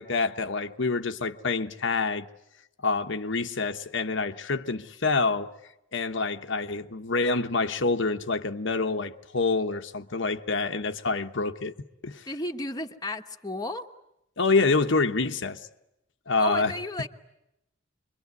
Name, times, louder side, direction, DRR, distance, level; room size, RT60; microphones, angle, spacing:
voice 1, 0.0-2.3 2.8-5.5 5.9-11.7 12.0-12.3 14.4-15.6 16.3-16.7, left 3 dB, 65° left, 1.1 m, -27 dB
voice 2, 12.3-13.9 16.4-17.1, left 1 dB, 20° left, 1.3 m, -33 dB
26.0 x 23.5 x 9.5 m
head